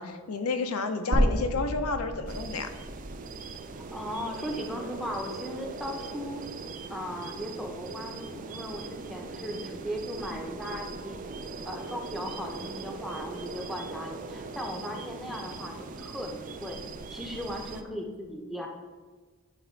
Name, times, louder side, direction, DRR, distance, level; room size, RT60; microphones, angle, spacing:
voice 1, 0.0-2.7, left 4 dB, 90° left, 7 dB, 0.6 m, -31 dB
sound 1, 1.1-5.3 5.6-5.7 7.1-7.2, equal, 55° right, 1.3 m, -31 dB
sound 2, 2.3-17.8, right 4 dB, 40° right, 0.4 m, -40 dB
voice 2, 3.9-6.4 6.9-11.3 11.6-16.8 17.1-18.7, equal, ahead, 0 dB, 0.7 m, -37 dB
9.1 x 3.3 x 4.5 m, 1.4 s
head